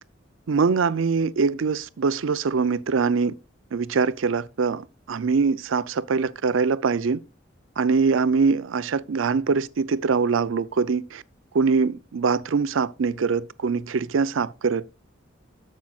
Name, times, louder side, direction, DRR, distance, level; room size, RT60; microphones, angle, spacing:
voice 1, 0.5-3.3 3.7-7.2 7.8-11.2 11.5-14.9, right 5 dB, 90° right, 0.5 m, -23 dB
11.5 x 7.4 x 2.3 m
head